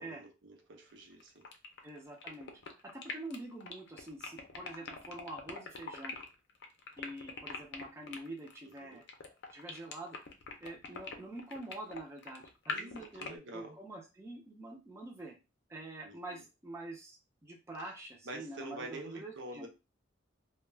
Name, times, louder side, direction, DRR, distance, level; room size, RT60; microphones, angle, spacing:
voice 1, 0.0-1.5 8.8-9.0 12.7-13.8 16.0-16.4 17.8-17.9 18.2-19.7, right 2 dB, 65° right, 3 dB, 0.6 m, -47 dB
sound 1, 0.9-13.3, left 4 dB, 60° left, 0.5 m, -43 dB
voice 2, 1.8-2.5 2.8-6.2 7.0-9.0 9.5-10.2 10.6-15.4 15.7-17.2 17.4-19.7, right 2 dB, 15° right, -1 dB, 0.4 m, -46 dB
2.2 x 2.2 x 3.2 m, 0.29 s
head